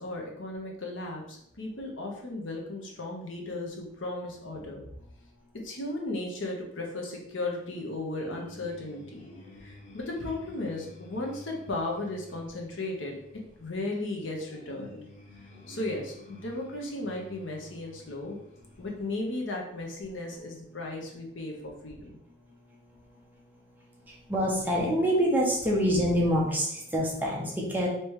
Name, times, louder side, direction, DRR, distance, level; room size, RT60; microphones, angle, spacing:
voice 1, 0.0-4.8 5.5-9.2 9.6-15.1 15.7-18.4 18.8-22.2, left 2 dB, 80° left, 0 dB, 1.0 m, -35 dB
sound 1, 8.2-19.4, left 1 dB, 35° left, 0.8 m, -51 dB
voice 2, 24.3-27.9, equal, 10° right, -3 dB, 0.8 m, -26 dB
3.4 x 3.0 x 4.6 m, 0.75 s
head